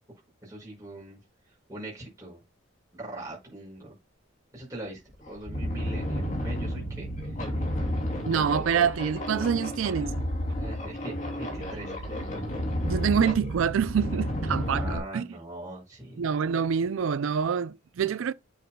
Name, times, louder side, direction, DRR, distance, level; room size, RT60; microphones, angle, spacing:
voice 1, 0.4-1.2 1.5-2.4 2.9-3.9 4.5-5.0 5.3-7.6 8.3-8.7 10.0-10.1 10.5-12.3 14.6-16.3, right 1 dB, 15° right, 5.7 m, -41 dB
sound 1, 4.6-4.7 5.1-15.0, equal, 35° left, 2.7 m, -31 dB
voice 2, 8.3-10.3 12.8-15.3 16.2-18.3, right 7 dB, 75° right, 0.4 m, -26 dB
9.2 x 7.7 x 2.2 m
head